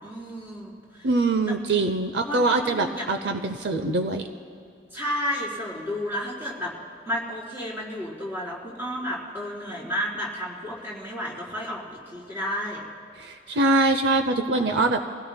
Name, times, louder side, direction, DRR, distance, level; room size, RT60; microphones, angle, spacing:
voice 1, 0.0-1.1 2.2-3.1 4.9-6.7 7.1-12.8, equal, 15° right, -6 dB, 4.0 m, -32 dB
voice 2, 1.0-4.3 13.2-15.0, right 2 dB, 70° right, 7 dB, 0.6 m, -23 dB
26.0 x 17.0 x 2.2 m, 2.6 s
head